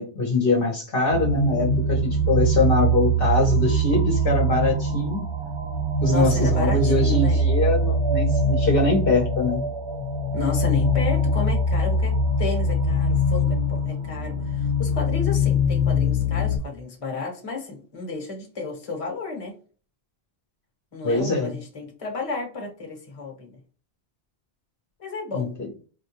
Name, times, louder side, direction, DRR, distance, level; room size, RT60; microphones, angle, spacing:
voice 1, 0.0-5.3 6.0-9.6 21.0-21.6 25.3-25.5, left 2 dB, 60° left, 0 dB, 1.0 m, -23 dB
sound 1, 1.1-16.6, equal, 35° right, 0.6 m, -23 dB
voice 2, 6.1-7.4 10.3-19.5 20.9-23.5 25.0-25.5, left 3 dB, 35° left, 1 dB, 1.0 m, -32 dB
4.3 x 2.2 x 2.9 m, 0.39 s
omnidirectional pair, 1.1 m